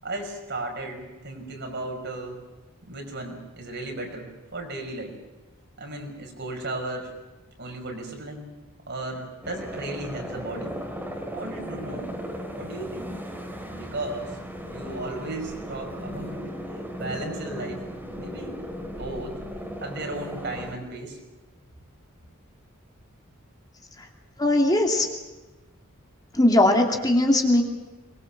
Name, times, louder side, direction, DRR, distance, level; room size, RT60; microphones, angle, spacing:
voice 1, 0.0-2.4 2.8-5.2 5.8-7.1 7.6-8.5 8.9-10.7 11.3-12.2 12.5-13.1 13.7-14.4 14.7-16.5 16.9-17.8 18.2-18.6 19.0-19.3 19.8-21.2, right 2 dB, 55° right, 2 dB, 5.7 m, -35 dB
sound 1, 9.4-20.7, equal, 10° right, 3.4 m, -36 dB
voice 2, 24.4-25.1 26.3-27.6, left 1 dB, 20° left, 2 dB, 2.6 m, -19 dB
23.5 x 22.0 x 7.3 m, 1.1 s
head